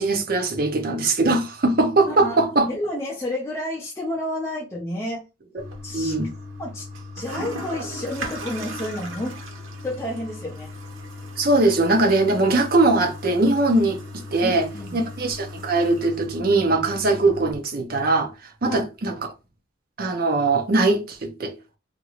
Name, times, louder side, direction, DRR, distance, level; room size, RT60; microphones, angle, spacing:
voice 1, 0.0-2.7 5.9-6.3 11.4-14.0 14.3-18.3 18.6-19.3 20.0-21.5, right 2 dB, 45° right, 0.6 m, -21 dB
voice 2, 2.0-2.4 2.7-5.3 5.8-6.1 6.6-6.8 7.1-9.4 9.8-10.7 14.4-15.0 18.6-18.8, left 1 dB, 15° left, 0.6 m, -30 dB
Toilet flush, 5.6-17.5, left 1 dB, 85° right, 0.9 m, -37 dB
2.9 x 2.6 x 2.9 m
head